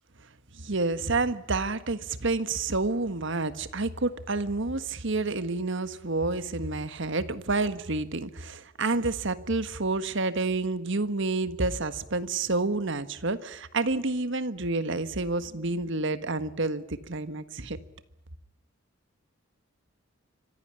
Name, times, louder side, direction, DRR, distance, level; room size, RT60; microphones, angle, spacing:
voice 1, 0.2-17.8, right 3 dB, 60° right, 1.5 m, -29 dB
26.0 x 15.5 x 9.9 m
head